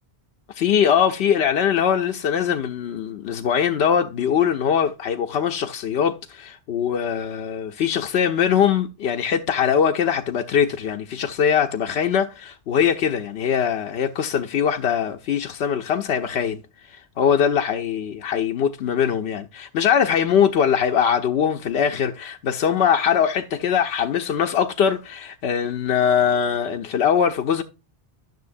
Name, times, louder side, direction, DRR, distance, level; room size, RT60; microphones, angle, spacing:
voice 1, 0.5-16.6 16.9-27.6, left 8 dB, 90° left, 0.9 m, -22 dB
12.0 x 6.3 x 2.6 m
omnidirectional pair, 1.0 m